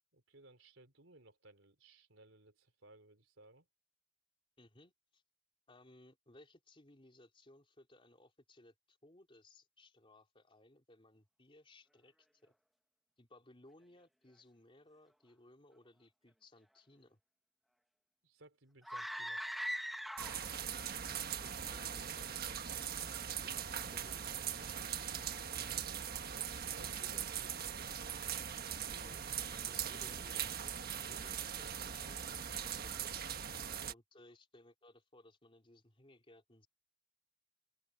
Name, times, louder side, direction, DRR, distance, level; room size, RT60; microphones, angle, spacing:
voice 1, 0.3-3.7 18.2-19.4 25.6-27.9 33.5-33.7, right 2 dB, 85° right, 3.5 m, -61 dB
voice 2, 4.6-5.2 5.7-12.5 13.2-17.2 20.9-24.6 26.8-27.3 27.8-27.9 28.9-29.3 29.6-30.7 31.1-33.2 33.8-36.7, left 1 dB, 30° left, 3.5 m, -62 dB
sound 1, 18.8-20.6, equal, ahead, 1.2 m, -41 dB
sound 2, 20.2-33.9, right 8 dB, 55° right, 1.4 m, -41 dB
open air
head